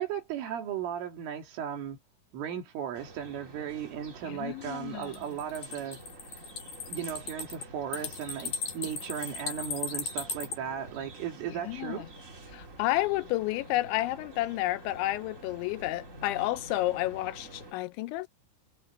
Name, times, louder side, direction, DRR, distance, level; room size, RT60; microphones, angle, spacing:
voice 1, 0.0-2.0 2.3-6.0 6.9-12.0, right 9 dB, 80° right, 5.6 m, -36 dB
sound 1, 2.9-17.7, right 2 dB, 40° right, 1.0 m, -49 dB
voice 2, 4.2-5.2 11.5-12.1 12.5-18.3, left 17 dB, 80° left, 3.0 m, -31 dB
sound 2, 5.0-10.6, left 5 dB, 50° left, 3.3 m, -37 dB
omnidirectional pair, 5.7 m